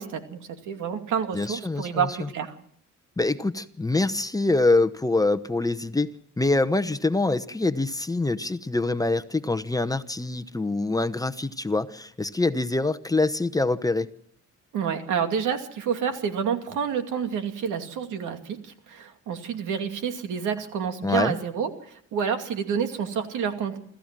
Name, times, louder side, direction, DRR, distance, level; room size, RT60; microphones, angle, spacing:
voice 1, 0.0-2.5 14.7-23.8, right 7 dB, 85° right, 6 dB, 2.5 m, -29 dB
voice 2, 1.3-2.1 3.2-6.1 6.4-14.1 21.0-21.3, left 2 dB, 10° left, 10 dB, 0.9 m, -25 dB
26.5 x 14.0 x 7.5 m, 0.68 s
cardioid pair, 90°, 30 cm